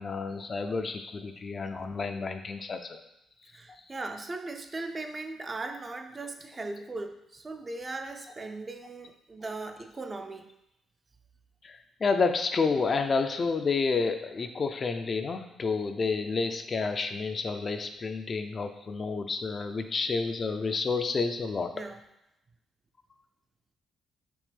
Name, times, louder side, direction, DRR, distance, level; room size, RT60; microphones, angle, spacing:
voice 1, 0.0-3.0 3.7-3.8 9.4-9.6 11.6-21.9, left 4 dB, 40° left, 7 dB, 0.4 m, -30 dB
voice 2, 3.5-10.5 21.7-22.0, right 3 dB, 30° right, 6 dB, 0.5 m, -38 dB
5.2 x 3.0 x 3.3 m, 0.87 s
cardioid pair, 90°, 0 cm